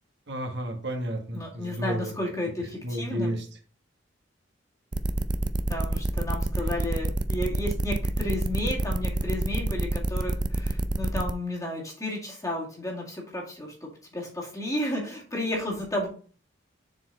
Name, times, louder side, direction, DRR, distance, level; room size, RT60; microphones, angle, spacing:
voice 1, 0.3-2.1 2.8-3.4, equal, 65° right, 3 dB, 1.5 m, -31 dB
voice 2, 1.3-3.3 5.7-16.1, left 1 dB, 20° left, -2 dB, 2.2 m, -32 dB
sound 1, 4.9-11.3, right 2 dB, 25° right, 0.4 m, -27 dB
7.1 x 4.4 x 4.1 m, 0.40 s
head